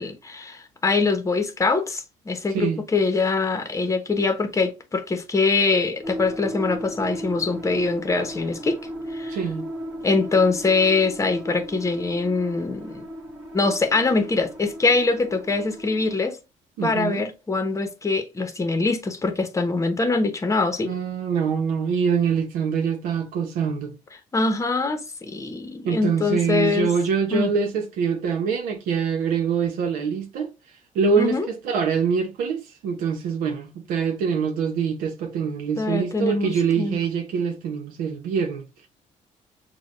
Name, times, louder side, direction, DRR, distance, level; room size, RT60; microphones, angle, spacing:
voice 1, 0.0-8.8 9.1-9.4 10.0-13.0 13.5-16.4 16.8-20.9 24.3-26.9 27.3-27.5 31.2-31.5 35.8-37.0, left 3 dB, 20° left, 0.8 m, -23 dB
voice 2, 2.5-2.8 9.3-9.7 16.8-17.3 20.8-23.9 25.8-30.5 30.9-38.9, right 6 dB, 85° right, 0.8 m, -24 dB
sound 1, 6.0-16.2, equal, 10° right, 1.0 m, -36 dB
6.2 x 2.3 x 2.5 m
cardioid pair, 95°, 14 cm